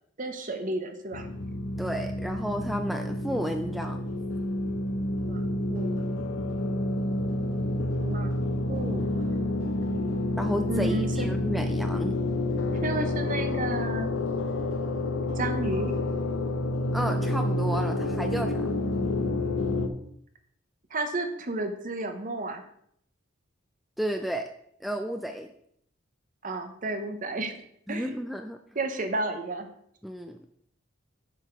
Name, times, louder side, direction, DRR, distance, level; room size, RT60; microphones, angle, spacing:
voice 1, 0.2-1.3 5.2-6.2 8.0-10.1 10.7-11.3 12.8-14.1 15.4-16.0 20.9-22.6 26.4-27.6 27.9-28.2 28.7-29.7, right 2 dB, 45° right, 7 dB, 0.9 m, -32 dB
sound 1, 1.1-19.9, left 1 dB, 80° left, 0.8 m, -29 dB
voice 2, 1.8-4.1 10.4-12.1 16.9-18.7 24.0-24.5 24.8-25.5 27.9-28.6 30.0-30.4, equal, ahead, 5 dB, 0.4 m, -32 dB
7.0 x 5.9 x 4.6 m, 0.68 s
head